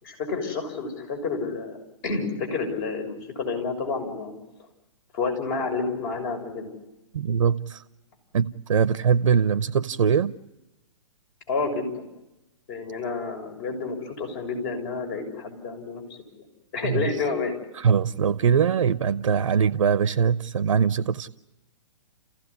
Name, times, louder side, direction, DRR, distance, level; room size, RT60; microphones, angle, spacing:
voice 1, 0.0-1.8 2.0-4.3 5.1-6.7 11.5-12.0 12.7-16.0 16.7-17.5, left 4 dB, 40° left, 6.5 m, -29 dB
voice 2, 7.1-7.8 8.3-10.3 16.8-17.0 17.8-21.3, right 7 dB, 70° right, 0.8 m, -22 dB
30.0 x 16.0 x 9.9 m
hypercardioid pair, 130°, 17 cm